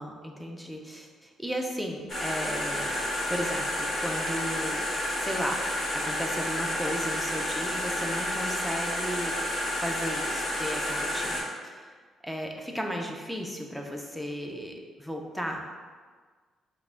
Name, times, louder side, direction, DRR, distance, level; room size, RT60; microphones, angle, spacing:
voice 1, 0.0-3.0 3.3-4.9 5.2-5.6 5.9-9.3 9.7-12.0 12.2-15.6, equal, ahead, 1 dB, 0.5 m, -35 dB
sound 1, 2.1-11.4, left 1 dB, 45° left, 1.5 m, -30 dB
4.8 x 2.2 x 3.4 m, 1.5 s
cardioid pair, 90°, 0 cm